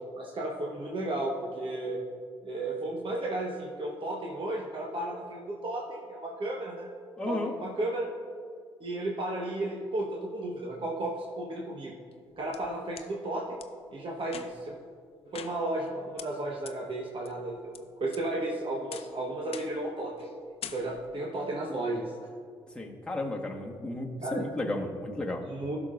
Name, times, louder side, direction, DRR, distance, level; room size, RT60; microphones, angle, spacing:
voice 1, 0.2-2.0 2.4-6.9 7.3-8.1 8.8-12.0 12.4-13.6 13.9-14.7 15.3-20.3 20.6-22.1 24.2-24.4 25.4-25.8, right 1 dB, 45° right, -2 dB, 1.3 m, -34 dB
voice 2, 7.2-7.5 22.7-25.4, left 1 dB, 10° left, -1 dB, 1.5 m, -33 dB
sound 1, 12.1-13.1 13.6-13.7 14.2-14.8 15.3-15.9 16.2-16.3 16.7-16.8 17.2-17.8 18.1-18.5 18.9-19.2 19.5-19.9 20.2-20.3 20.6-21.2, left 8 dB, 50° left, 0.5 m, -44 dB
15.5 x 6.1 x 2.6 m, 2.1 s
hypercardioid pair, 45°, 12 cm